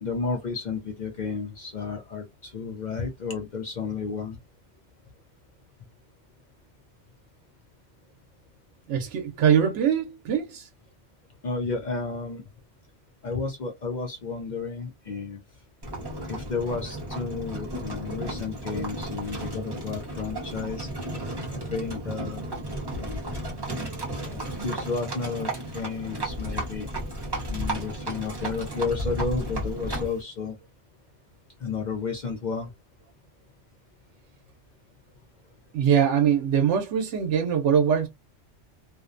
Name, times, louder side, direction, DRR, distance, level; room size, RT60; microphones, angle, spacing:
voice 1, 0.0-4.4 9.0-9.1 11.4-12.4 13.2-15.4 16.3-20.9 21.5-22.4 23.0-23.3 24.3-26.9 27.5-30.6 31.6-32.7, left 4 dB, 55° left, 0.5 m, -32 dB
voice 2, 8.9-10.7 35.7-38.1, right 8 dB, 85° right, 0.9 m, -22 dB
Livestock farm animals working animals, 15.8-30.2, right 1 dB, 25° right, 0.7 m, -33 dB
2.5 x 2.1 x 2.4 m
omnidirectional pair, 1.2 m